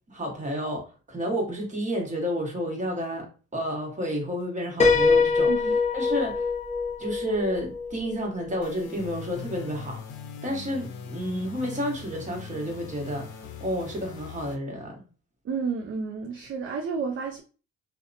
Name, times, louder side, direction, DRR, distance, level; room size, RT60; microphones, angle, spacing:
voice 1, 0.1-3.3 3.5-6.4 7.0-10.0 10.4-15.0, equal, 25° right, 1.1 m, -31 dB
Piano, 4.8-8.5, left 4 dB, 25° left, 0.5 m, -24 dB
sound 1, 8.6-14.6, left 5 dB, 85° left, 0.5 m, -41 dB
voice 2, 15.4-17.4, right 5 dB, 45° right, 0.4 m, -31 dB
2.8 x 2.1 x 2.5 m
cardioid pair, 90°, 30 cm